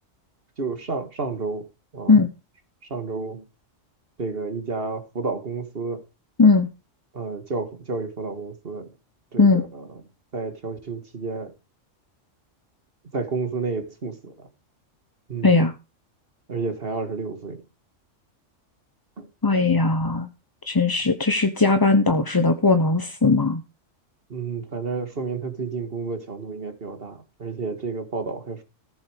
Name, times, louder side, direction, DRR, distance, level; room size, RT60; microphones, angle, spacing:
voice 1, 0.6-1.7 1.9-2.2 2.9-3.5 4.2-6.0 7.1-8.9 9.3-9.9 10.3-11.5 13.1-14.5 15.3-15.7 16.5-17.6 19.2-19.3 24.3-28.6, right 4 dB, 50° right, 1.9 m, -31 dB
voice 2, 15.4-15.7 19.4-20.3 20.6-23.6, left 3 dB, 20° left, 0.7 m, -18 dB
14.5 x 7.5 x 5.0 m
omnidirectional pair, 1.3 m